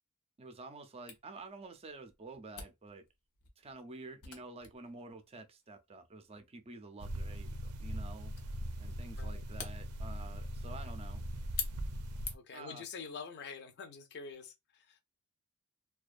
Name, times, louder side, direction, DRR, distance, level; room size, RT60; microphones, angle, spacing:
voice 1, 0.4-3.1 3.6-8.4 8.8-11.2 12.5-12.8, right 3 dB, 25° right, 0.4 m, -49 dB
Camera, 1.1-12.7, left 6 dB, 90° left, 0.8 m, -49 dB
sound 1, 7.0-12.4, equal, 90° right, 0.5 m, -40 dB
voice 2, 12.3-15.0, left 5 dB, 50° left, 0.5 m, -46 dB
2.5 x 2.3 x 2.4 m
head